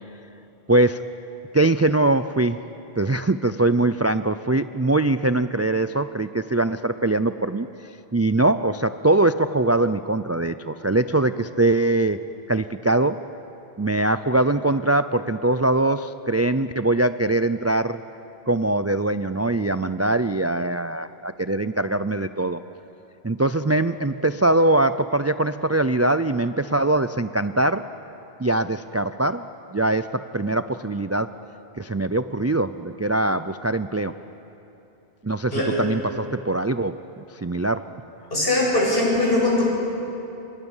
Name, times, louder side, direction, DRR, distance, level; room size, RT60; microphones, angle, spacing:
voice 1, 0.7-1.1 1.5-2.6 3.0-7.7 8.1-12.2 12.5-13.2 13.8-18.0 18.5-22.6 23.2-27.9 28.4-29.4 29.7-31.3 31.8-34.1 35.2-37.9, right 2 dB, 25° right, 12 dB, 0.3 m, -22 dB
voice 2, 35.5-35.8 38.3-39.6, left 2 dB, 65° left, -4 dB, 8.2 m, -21 dB
29.5 x 26.5 x 7.3 m, 3.0 s
omnidirectional pair, 1.1 m